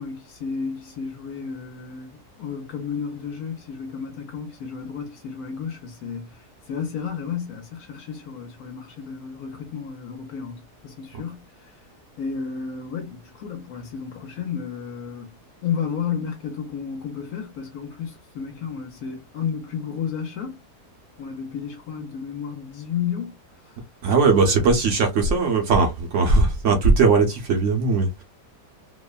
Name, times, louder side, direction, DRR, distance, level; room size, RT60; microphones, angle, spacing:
voice 1, 0.0-11.7 12.2-20.6 21.2-23.4 23.6-23.8 24.4-24.8, left 7 dB, 70° left, 1.1 m, -32 dB
voice 2, 24.0-28.2, right 4 dB, 65° right, 0.8 m, -19 dB
2.9 x 2.1 x 2.3 m
omnidirectional pair, 1.7 m